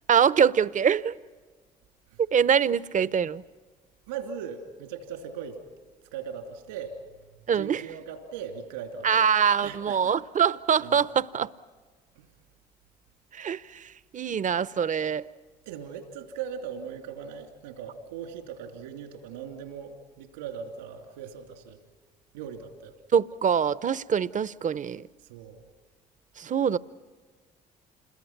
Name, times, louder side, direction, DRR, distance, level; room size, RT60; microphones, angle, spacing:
voice 1, 0.1-1.1 2.3-3.4 7.5-7.8 9.0-11.5 13.3-15.3 23.1-25.0 26.4-26.8, right 7 dB, 35° right, 0.7 m, -24 dB
voice 2, 4.1-5.6 6.1-7.0 7.5-9.3 9.6-10.1 10.8-11.0 12.1-12.3 15.6-21.8 22.3-22.9 25.2-25.7, right 7 dB, 85° right, 3.0 m, -39 dB
28.5 x 21.5 x 6.0 m
hypercardioid pair, 50°, 21 cm